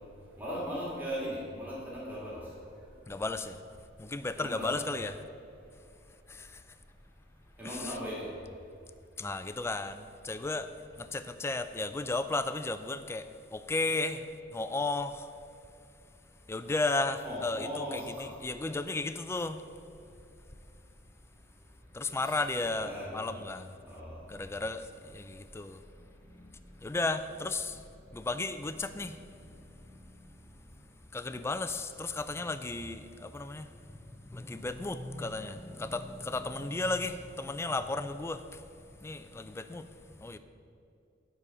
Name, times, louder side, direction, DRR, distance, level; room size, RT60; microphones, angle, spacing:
voice 1, 0.4-2.4 4.3-4.7 7.6-8.3 17.2-18.2 22.8-23.3 23.9-24.2, equal, 10° right, -8 dB, 2.1 m, -38 dB
voice 2, 3.1-3.6 4.0-5.2 6.3-6.6 7.6-8.0 9.2-10.7 11.0-13.3 13.5-15.3 16.5-19.6 21.9-23.7 24.3-25.8 26.8-27.8 28.1-29.2 31.1-33.7 34.3-38.6 39.0-39.9 40.2-40.4, left 2 dB, 15° left, 10 dB, 0.3 m, -34 dB
10.5 x 4.1 x 7.4 m, 2.6 s
head